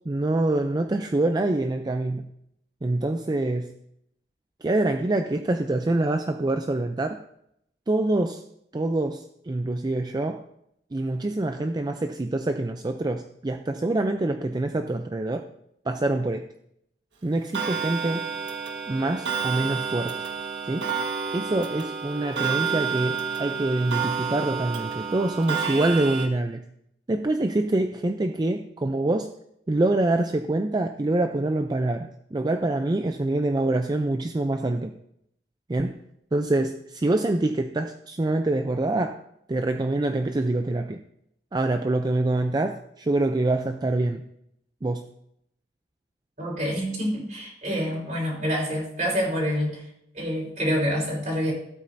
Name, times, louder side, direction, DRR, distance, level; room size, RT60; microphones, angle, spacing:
voice 1, 0.1-2.3 2.8-3.7 4.6-7.2 7.9-8.4 8.7-10.4 10.9-15.5 15.9-16.5 17.2-18.3 18.9-20.2 20.7-20.9 21.3-26.7 27.1-29.3 29.7-34.9 35.7-36.0 36.3-39.2 39.5-41.0 41.5-44.3 44.8-45.1, right 2 dB, 25° right, 6 dB, 0.4 m, -25 dB
Clock, 17.5-26.3, right 6 dB, 85° right, 1.5 m, -30 dB
voice 2, 46.4-49.8 50.1-51.5, equal, 45° right, -5 dB, 4.1 m, -27 dB
15.0 x 8.5 x 2.6 m, 0.76 s
head